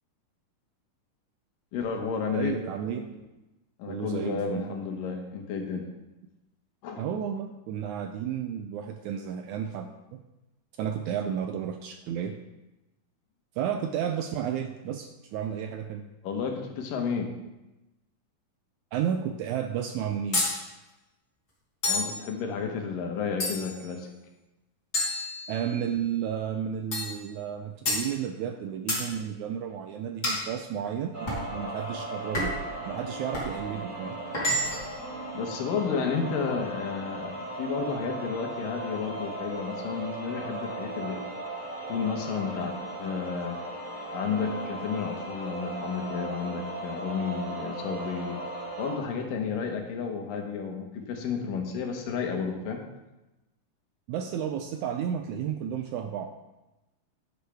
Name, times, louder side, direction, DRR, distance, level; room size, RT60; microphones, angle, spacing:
voice 1, 1.7-2.6 3.8-5.9 6.8-7.0 16.2-17.3 21.9-24.1 35.3-41.3 41.9-43.6 44.1-48.4 48.8-52.8, left 6 dB, 80° left, 3 dB, 2.9 m, -32 dB
voice 2, 2.3-3.2 3.9-4.8 7.0-10.2 10.8-12.4 13.6-16.0 18.9-20.4 25.5-32.5 32.9-34.2 54.1-56.3, right 8 dB, 80° right, 6 dB, 1.7 m, -32 dB
sound 1, 20.3-20.6 21.8-22.2 23.4-23.8 24.9-25.8 26.9-27.2 27.8-28.1 28.9-29.1 30.2-30.5 31.3-31.5 32.3-32.7 33.3-33.5 34.3-34.9, left 1 dB, 25° left, 2.6 m, -29 dB
sound 2, 31.1-48.9, right 2 dB, 40° right, 3.6 m, -37 dB
10.0 x 10.0 x 3.5 m, 1.0 s
omnidirectional pair, 3.9 m